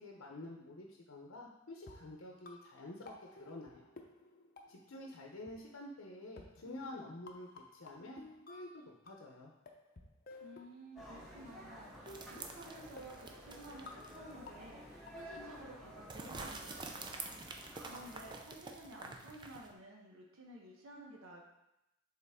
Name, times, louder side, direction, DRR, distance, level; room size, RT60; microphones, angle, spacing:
voice 1, 0.0-3.1 3.4-3.9 4.7-9.5, left 1 dB, 90° left, 0 dB, 0.7 m, -49 dB
sound 1, 1.8-5.2 5.5-5.6 6.4-9.4 9.7-11.3 12.1-16.3, left 3 dB, 45° left, 0.7 m, -55 dB
voice 2, 10.4-17.2 17.7-21.4, right 1 dB, 85° right, -1 dB, 0.9 m, -53 dB
sound 2, 10.9-18.4, equal, ahead, 1.4 m, -53 dB
sound 3, 12.1-14.3 14.7-14.8 16.1-19.7, right 3 dB, 20° right, 0.5 m, -48 dB
6.7 x 4.0 x 3.5 m, 0.90 s
head